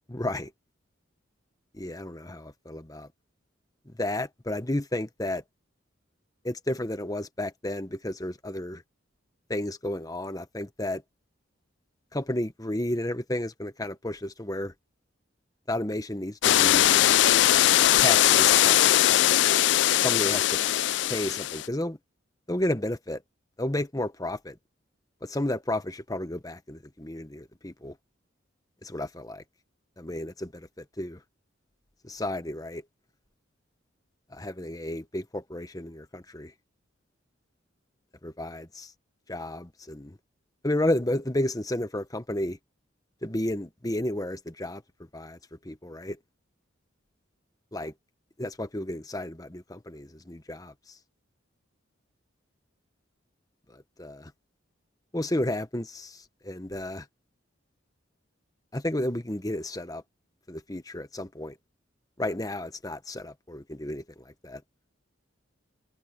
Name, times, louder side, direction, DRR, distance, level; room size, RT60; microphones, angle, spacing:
voice 1, 0.1-0.5 1.7-3.1 3.9-5.4 6.4-8.8 9.5-11.0 12.1-14.7 15.7-17.1 18.0-19.3 20.0-20.6 21.1-22.0 22.5-23.2 23.6-24.6 25.2-28.0 28.8-29.4 30.0-31.2 32.0-32.8 34.3-36.5 38.2-38.9 39.3-40.2 40.6-42.6 43.2-44.8 45.1-45.4 45.6-46.2 47.7-47.9 48.4-51.0 53.7-54.3 55.1-57.1 58.7-60.0 60.5-61.6 62.2-64.6, left 1 dB, 20° left, 1.1 m, -32 dB
sound 1, 16.4-21.7, left 13 dB, 60° left, 0.3 m, -20 dB
head